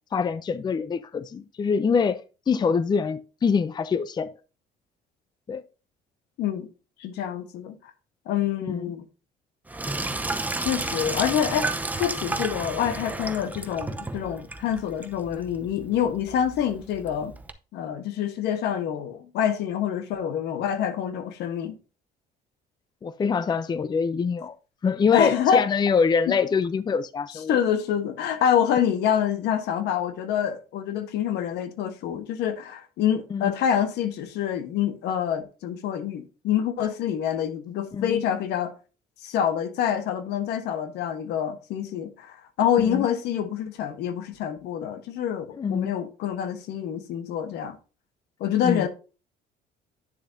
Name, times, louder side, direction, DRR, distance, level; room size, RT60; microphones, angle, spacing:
voice 1, 0.1-2.2 2.5-4.3 5.5-5.6 8.7-8.9 23.0-24.5 24.8-27.6 33.3-33.5 37.9-38.2 42.9-43.1 45.6-45.9 48.6-48.9, left 5 dB, 25° left, 0.5 m, -24 dB
voice 2, 7.0-7.8 8.3-9.0 10.6-17.3 17.7-21.7 25.1-25.7 27.5-38.7 39.2-47.8 48.4-48.9, left 9 dB, 80° left, 1.2 m, -26 dB
Sink (filling or washing), 9.7-17.5, right 2 dB, 10° right, 0.7 m, -32 dB
9.9 x 6.8 x 2.7 m
cardioid pair, 110°, 17 cm